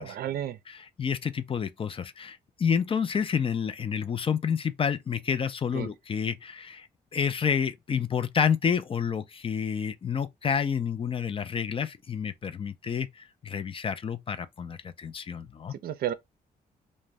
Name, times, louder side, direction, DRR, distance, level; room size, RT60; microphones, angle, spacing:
voice 1, 0.0-0.6 5.7-5.9 15.8-16.1, right 11 dB, 65° right, 0.5 m, -31 dB
voice 2, 0.7-6.9 7.1-15.7, left 7 dB, 35° left, 0.4 m, -29 dB
2.5 x 2.1 x 3.1 m
cardioid pair, 75°, 17 cm